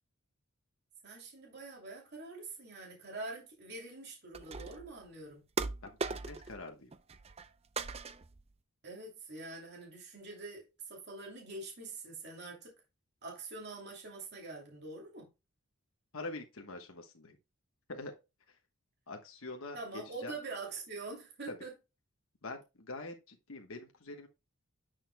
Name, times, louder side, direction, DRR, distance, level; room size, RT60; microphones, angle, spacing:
voice 1, 1.0-5.4 8.8-12.7 13.2-15.3 19.7-21.7, right 3 dB, 50° right, 2.7 m, -45 dB
sound 1, 4.3-4.9 5.6-6.6 6.9-7.5 7.8-8.4, right 4 dB, 30° right, 0.5 m, -39 dB
voice 2, 6.2-6.9 16.1-17.4 17.9-18.1 18.5-18.6 19.1-20.3 21.5-21.6 22.4-24.3, left 2 dB, 65° left, 1.2 m, -44 dB
9.9 x 6.4 x 2.2 m
head